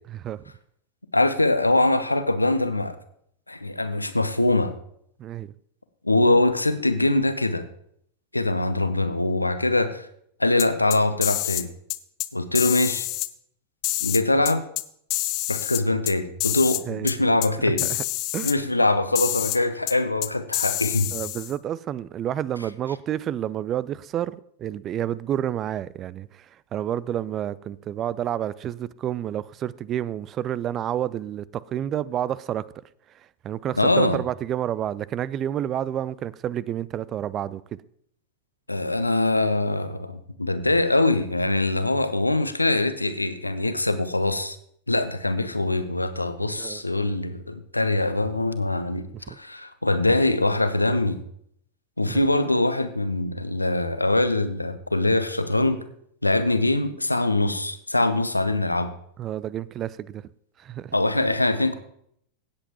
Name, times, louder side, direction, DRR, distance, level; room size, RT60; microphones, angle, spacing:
voice 1, 0.1-0.4 5.2-5.5 16.9-17.1 17.6-18.0 18.3-18.5 21.1-32.6 33.1-37.6 46.5-46.8 49.3-49.4 52.1-52.2 59.2-60.3 60.6-60.9, right 11 dB, 30° right, 0.4 m, -30 dB
voice 2, 1.1-3.0 3.5-4.7 6.0-7.6 8.3-10.1 10.4-11.7 12.3-13.1 14.0-14.6 15.5-17.9 18.4-21.1 33.8-34.2 38.7-44.6 44.9-49.0 49.4-51.2 52.0-55.8 56.2-58.9 60.9-61.7, left 2 dB, 85° left, 0.8 m, -23 dB
sound 1, 10.6-11.6 11.9-12.3 12.6-13.3 13.8-14.8 15.1-16.1 16.4-16.8 17.1-17.2 17.4-17.5 17.8-18.5 19.2-19.6 19.9-20.0 20.2-21.5, left 18 dB, 40° left, 0.5 m, -27 dB
16.5 x 7.9 x 3.0 m
figure-of-eight pair, 90°, 0 cm